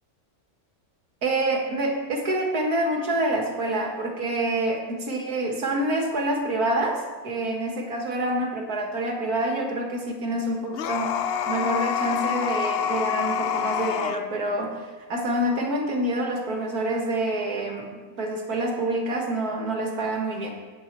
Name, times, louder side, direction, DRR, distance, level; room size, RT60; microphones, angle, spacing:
voice 1, 1.2-20.5, right 1 dB, 85° right, 1 dB, 2.3 m, -27 dB
sound 1, 10.7-14.2, left 8 dB, 65° left, 0.6 m, -27 dB
17.5 x 8.5 x 4.6 m, 1.4 s
omnidirectional pair, 1.6 m